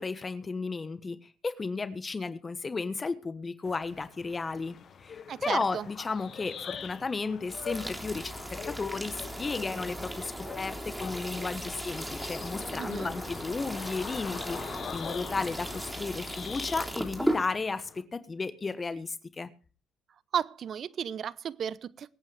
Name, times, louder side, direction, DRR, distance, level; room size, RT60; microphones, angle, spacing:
voice 1, 0.0-4.8 5.0-19.5, left 4 dB, 30° left, 1.2 m, -34 dB
sound 1, 3.6-18.0, left 7 dB, 50° left, 1.3 m, -44 dB
voice 2, 5.3-5.9 12.8-13.1 20.3-22.1, right 8 dB, 50° right, 0.7 m, -34 dB
sound 2, 7.5-17.4, right 1 dB, 5° right, 3.4 m, -37 dB
24.0 x 8.9 x 3.4 m
hypercardioid pair, 60°, 0 cm